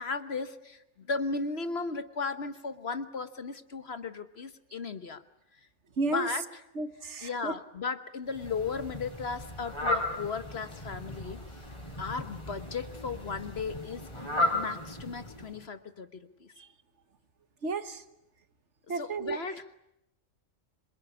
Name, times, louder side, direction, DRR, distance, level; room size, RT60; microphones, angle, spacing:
voice 1, 0.0-5.2 6.0-6.6 7.2-11.4 12.0-14.3 14.5-16.5 18.9-19.7, left 4 dB, 55° left, 11 dB, 1.4 m, -36 dB
voice 2, 6.0-6.3 6.8-7.5 17.6-18.0 18.9-19.4, right 3 dB, 60° right, 10 dB, 1.7 m, -32 dB
Fowl, 8.3-15.6, left 1 dB, 20° left, 4.7 m, -35 dB
26.5 x 23.0 x 9.7 m, 0.85 s
omnidirectional pair, 1.3 m